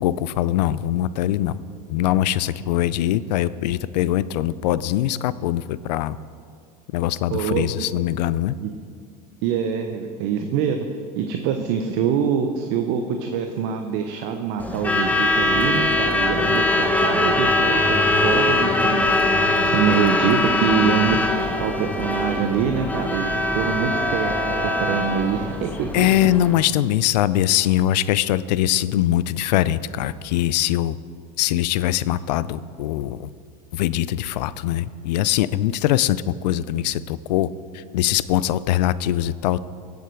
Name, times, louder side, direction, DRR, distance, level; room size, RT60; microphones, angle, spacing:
voice 1, 0.0-1.6 1.9-6.2 6.9-8.6 25.9-31.0 31.4-33.3 33.7-37.5 37.7-39.6, left 13 dB, 80° left, 17 dB, 0.5 m, -22 dB
voice 2, 7.3-7.9 8.6-8.7 9.4-10.9 11.2-23.3 23.5-26.1, right 7 dB, 60° right, 5 dB, 0.9 m, -25 dB
Truck / Alarm, 14.6-26.5, left 2 dB, 5° left, 1.3 m, -22 dB
15.5 x 8.1 x 4.6 m, 2.2 s
supercardioid pair, 100°, 21 cm